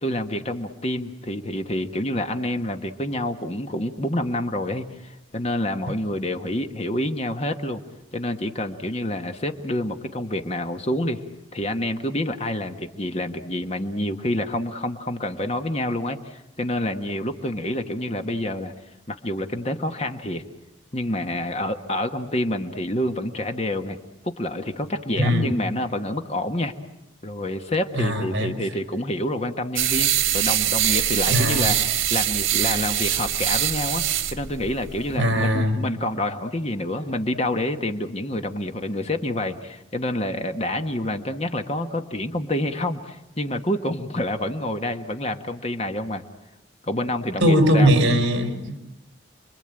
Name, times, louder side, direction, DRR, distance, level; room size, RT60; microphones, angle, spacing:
voice 1, 0.0-7.8 8.1-11.2 11.5-18.7 19.1-20.4 20.9-24.0 24.2-26.7 27.2-31.8 32.1-34.0 34.3-46.2 46.8-47.9, left 1 dB, 30° left, 6 dB, 1.3 m, -27 dB
voice 2, 25.2-25.5 28.0-28.5 31.3-31.7 35.2-35.8 47.4-48.8, equal, 65° right, 7 dB, 3.7 m, -20 dB
sound 1, 29.8-35.2, right 11 dB, 90° right, 1.5 m, -23 dB
29.5 x 22.5 x 9.0 m, 0.89 s
head